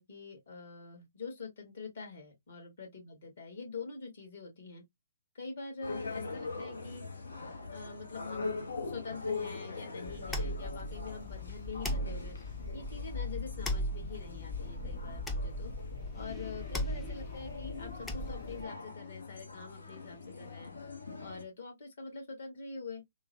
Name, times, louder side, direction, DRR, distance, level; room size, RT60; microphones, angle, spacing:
voice 1, 0.0-4.8 5.3-7.0 7.7-8.5 8.8-12.4 12.7-15.7 16.1-20.7 21.2-23.0, left 4 dB, 60° left, 2.0 m, -45 dB
sound 1, 5.8-21.4, left 4 dB, 75° left, 0.9 m, -42 dB
sound 2, 10.1-18.6, left 1 dB, 10° left, 0.6 m, -38 dB
3.7 x 2.2 x 2.8 m
figure-of-eight pair, 125°, 0 cm